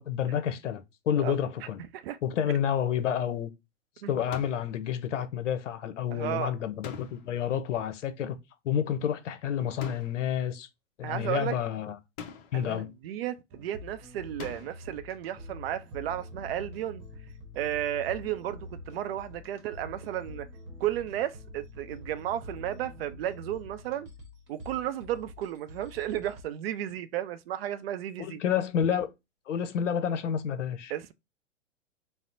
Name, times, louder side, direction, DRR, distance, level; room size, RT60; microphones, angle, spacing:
voice 1, 0.0-1.8 2.2-3.5 4.1-8.4 8.6-10.7 11.0-12.0 12.5-12.9 28.2-29.1 29.5-30.9, left 9 dB, 70° left, 0.7 m, -29 dB
sound 1, 4.3-4.8 6.8-7.5 9.8-10.4 12.2-12.7 14.4-14.9, left 6 dB, 35° left, 0.6 m, -43 dB
voice 2, 6.1-6.5 11.0-11.6 12.5-17.1 17.6-20.5 20.8-24.1 24.5-28.4 30.9-31.1, right 12 dB, 50° right, 0.5 m, -33 dB
sound 2, 13.5-26.4, left 1 dB, 30° right, 0.9 m, -46 dB
4.2 x 2.0 x 2.5 m
hypercardioid pair, 110°, 38 cm